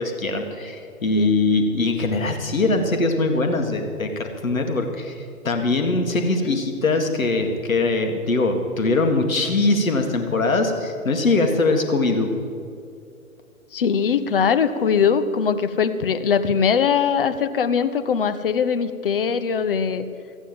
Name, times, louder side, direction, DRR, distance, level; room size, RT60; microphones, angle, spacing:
voice 1, 0.0-5.2 5.4-12.3, left 3 dB, 65° left, 5 dB, 1.9 m, -22 dB
voice 2, 13.7-20.1, left 6 dB, 40° left, 12 dB, 0.7 m, -21 dB
14.5 x 9.0 x 7.5 m, 2.4 s
figure-of-eight pair, 125°, 43 cm